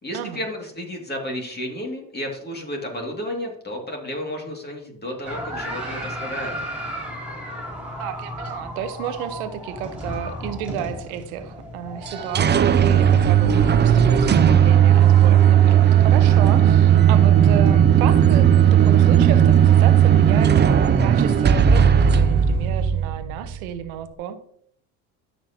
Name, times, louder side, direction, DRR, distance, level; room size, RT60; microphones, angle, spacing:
voice 1, 0.0-6.5, left 1 dB, 25° left, 1 dB, 2.6 m, -32 dB
sound 1, 5.2-22.0, equal, 5° right, 3.9 m, -36 dB
voice 2, 8.0-24.4, right 9 dB, 85° right, 10 dB, 1.1 m, -31 dB
sound 2, 12.1-23.7, right 9 dB, 25° right, 0.6 m, -15 dB
Organ, 12.1-22.8, right 5 dB, 50° right, 1.5 m, -39 dB
13.0 x 5.9 x 3.0 m, 0.67 s
supercardioid pair, 80°, 42 cm